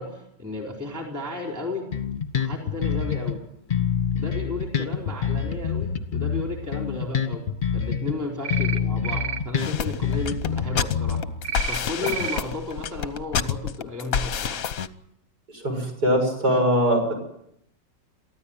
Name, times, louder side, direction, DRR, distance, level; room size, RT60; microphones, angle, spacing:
voice 1, 0.0-1.9 2.3-3.4 4.1-7.5 7.7-11.2 11.7-14.6, left 2 dB, 10° right, 1 dB, 4.2 m, -33 dB
Bass guitar, 1.9-3.4 3.7-8.2 8.5-11.5, left 7 dB, 30° left, 1.4 m, -26 dB
sound 1, 8.4-8.8 9.0-9.4 11.4-11.8 12.0-12.4, right 7 dB, 40° right, 0.6 m, -29 dB
sound 2, 9.6-14.9, left 7 dB, 55° left, 1.3 m, -28 dB
voice 2, 15.5-17.1, equal, 55° right, 1 dB, 7.0 m, -22 dB
23.5 x 15.0 x 9.1 m, 0.78 s
omnidirectional pair, 2.0 m